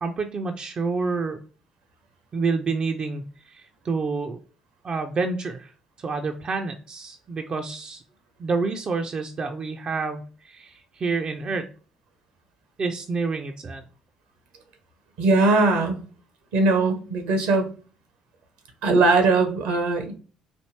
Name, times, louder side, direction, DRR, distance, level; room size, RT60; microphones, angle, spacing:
voice 1, 0.0-1.4 2.3-4.4 4.8-5.7 6.0-8.0 8.4-11.7 12.8-13.8, right 4 dB, 40° right, 5 dB, 0.5 m, -28 dB
voice 2, 15.2-16.0 16.5-17.7 18.8-20.1, right 3 dB, 70° right, 6 dB, 0.9 m, -20 dB
4.3 x 2.7 x 3.1 m, 0.38 s
figure-of-eight pair, 45°, 2 cm